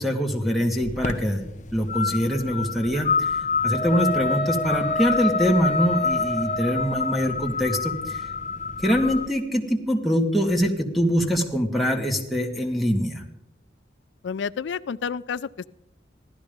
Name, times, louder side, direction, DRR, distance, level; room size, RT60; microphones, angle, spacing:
voice 1, 0.0-1.4 1.7-3.3 3.6-8.2 8.8-13.2, equal, ahead, -1 dB, 1.9 m, -24 dB
sound 1, 0.8-9.3, left 5 dB, 40° left, 0.8 m, -28 dB
Wind instrument woodwind instrument, 3.7-7.3, right 1 dB, 65° right, 3.2 m, -31 dB
voice 2, 14.2-15.7, left 6 dB, 85° left, 15 dB, 0.4 m, -30 dB
16.0 x 12.5 x 5.2 m, 0.83 s
head